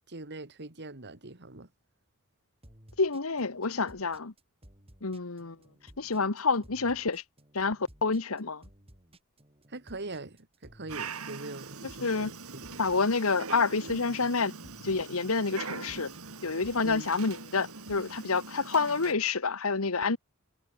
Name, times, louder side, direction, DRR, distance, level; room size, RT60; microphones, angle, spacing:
voice 1, 0.1-1.7 9.7-12.8 16.8-17.1, right 2 dB, 50° right, 2.4 m, -42 dB
sound 1, 2.6-18.6, equal, 25° right, 7.2 m, -57 dB
voice 2, 3.0-4.3 5.0-5.6 6.0-7.2 7.5-8.6 12.0-12.3 12.8-14.6 14.8-16.1 16.4-20.2, left 4 dB, 70° left, 1.4 m, -28 dB
Dog, 10.9-19.1, right 4 dB, 85° right, 2.6 m, -43 dB
head